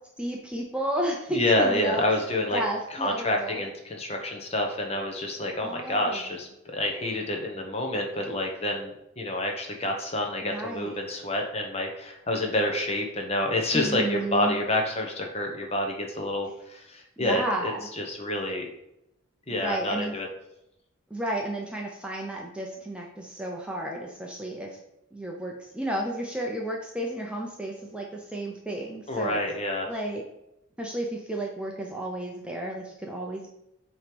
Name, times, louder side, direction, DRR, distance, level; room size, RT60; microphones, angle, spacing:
voice 1, 0.2-2.0 2.5-3.6 5.6-6.2 10.4-11.0 13.7-14.6 17.2-17.8 19.5-20.1 21.1-24.8 25.1-29.4 29.9-30.2 30.8-33.5, right 1 dB, 5° right, -1 dB, 0.6 m, -32 dB
voice 2, 1.3-2.6 2.9-18.6 19.5-20.3 29.1-29.9, left 1 dB, 30° left, 2 dB, 0.9 m, -28 dB
7.8 x 3.1 x 5.2 m, 0.83 s
head